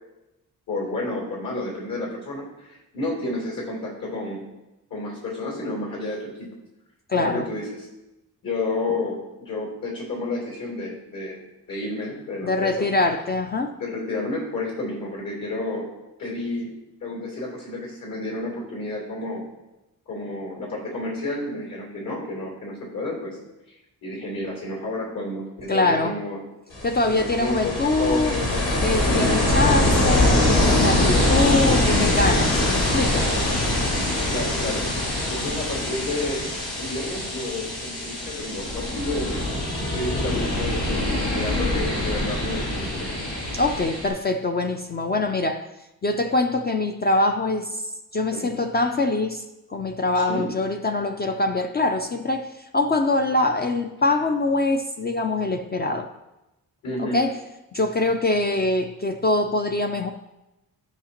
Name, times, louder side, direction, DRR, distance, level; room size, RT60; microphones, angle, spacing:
voice 1, 0.7-4.4 4.9-6.5 7.1-7.9 8.4-11.4 11.7-12.9 13.8-15.9 16.2-16.7 17.0-19.4 20.1-23.4 24.0-26.4 27.1-28.6 28.9-29.3 33.7-34.0 34.3-34.9 35.3-36.5 36.8-39.4 39.9-43.1 48.3-48.5 50.1-50.5 56.8-57.2, left 2 dB, 65° left, -2 dB, 3.3 m, -31 dB
voice 2, 7.1-7.5 12.4-13.7 25.7-26.2 26.8-28.3 28.8-33.3 43.5-45.7 46.0-47.8 48.1-49.4 49.7-56.1 57.0-57.4 57.7-60.1, left 2 dB, 30° left, 5 dB, 0.3 m, -23 dB
Ocean, 26.7-44.1, left 1 dB, 85° left, 2.9 m, -23 dB
13.0 x 5.7 x 2.9 m, 0.98 s
wide cardioid pair, 145°, 36 cm